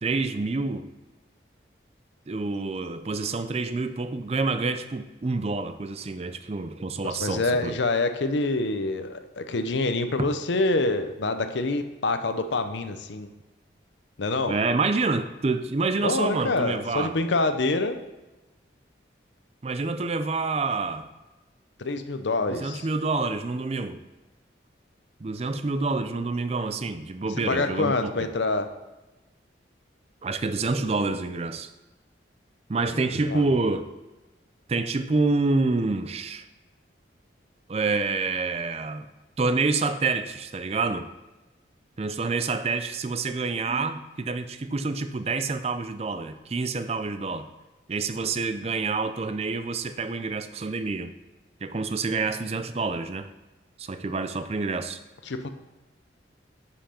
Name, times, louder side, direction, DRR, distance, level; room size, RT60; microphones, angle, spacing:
voice 1, 0.0-0.9 2.3-7.7 10.2-10.3 14.5-17.1 19.6-21.1 22.5-24.0 25.2-28.1 30.2-31.7 32.7-33.9 34.7-36.5 37.7-39.1 39.4-41.1 42.0-47.5 47.9-51.1 51.6-53.3 53.8-55.0, right 3 dB, 35° right, 10 dB, 0.4 m, -27 dB
voice 2, 7.0-13.3 14.2-14.6 16.0-18.0 21.8-22.9 27.5-28.7 32.9-33.6 55.3-55.5, left 2 dB, 70° left, 8 dB, 0.7 m, -26 dB
10.0 x 5.8 x 4.3 m, 1.1 s
head